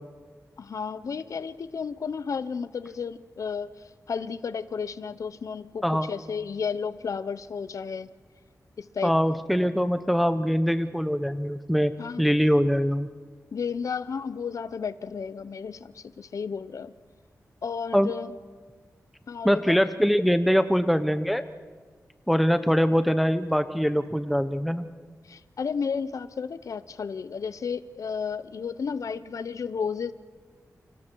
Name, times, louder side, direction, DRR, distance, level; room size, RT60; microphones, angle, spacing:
voice 1, 0.6-8.1 8.8-9.1 12.0-12.3 13.5-16.9 17.6-18.3 19.3-19.8 25.2-30.1, left 6 dB, 65° left, 14 dB, 0.6 m, -33 dB
voice 2, 9.0-11.9 12.2-13.1 17.9-18.1 19.4-21.4 22.3-24.9, equal, ahead, 10 dB, 0.8 m, -23 dB
30.0 x 26.0 x 4.6 m, 1.5 s
wide cardioid pair, 130°, 6 cm